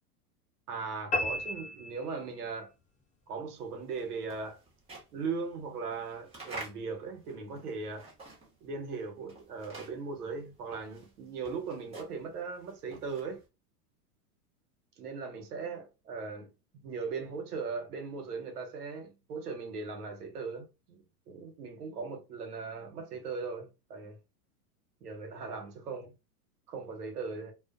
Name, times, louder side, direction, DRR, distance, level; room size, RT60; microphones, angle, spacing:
voice 1, 0.7-2.7 3.3-4.6 5.1-8.1 8.6-13.4 15.0-16.5 16.8-24.2 25.0-26.1 26.7-27.5, right 4 dB, 75° right, 1.1 m, -39 dB
sound 1, 1.1-2.6, left 1 dB, 15° left, 0.6 m, -34 dB
sound 2, 3.7-8.7 9.0-13.4, right 2 dB, 15° right, 0.9 m, -49 dB
2.4 x 2.2 x 2.4 m
hypercardioid pair, 115°, 46 cm